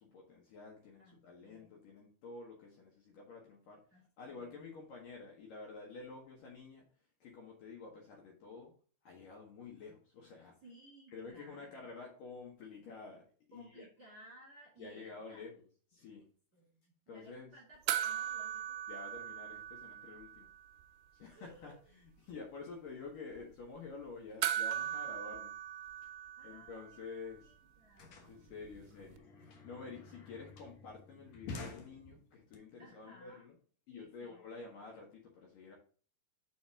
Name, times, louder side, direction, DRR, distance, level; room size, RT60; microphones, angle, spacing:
voice 1, 0.0-3.8 4.2-6.8 7.2-8.7 9.0-10.5 11.1-13.2 13.5-13.9 14.8-16.3 17.1-17.5 18.9-20.5 21.1-25.5 26.4-27.5 28.3-33.6 33.9-35.8, left 4 dB, 60° left, -1 dB, 2.7 m, -50 dB
voice 2, 1.0-1.7 3.9-4.1 4.4-4.6 10.6-11.9 13.5-15.4 16.5-18.8 21.3-21.8 26.4-28.4 32.8-33.4 33.9-34.6, right 1 dB, 25° right, -4 dB, 2.7 m, -59 dB
sound 1, 17.9-20.5 20.8-20.9 24.4-27.0 29.2-29.3, right 10 dB, 80° right, 2.4 m, -38 dB
sound 2, 27.1-27.2 27.4-32.5, left 3 dB, 75° left, 1.6 m, -51 dB
7.3 x 5.3 x 3.7 m, 0.42 s
omnidirectional pair, 5.2 m